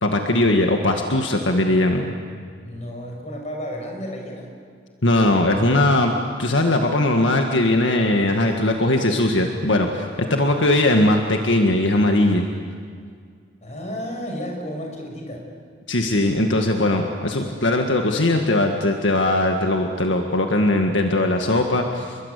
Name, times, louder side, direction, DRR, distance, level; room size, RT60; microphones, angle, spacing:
voice 1, 0.0-2.1 5.0-6.1 6.4-12.5 15.9-22.2, left 1 dB, 75° left, 3 dB, 1.9 m, -19 dB
voice 2, 2.6-4.5 8.2-8.7 10.2-10.4 13.6-15.5, equal, 35° left, 2 dB, 6.1 m, -33 dB
30.0 x 22.5 x 8.4 m, 2.1 s
head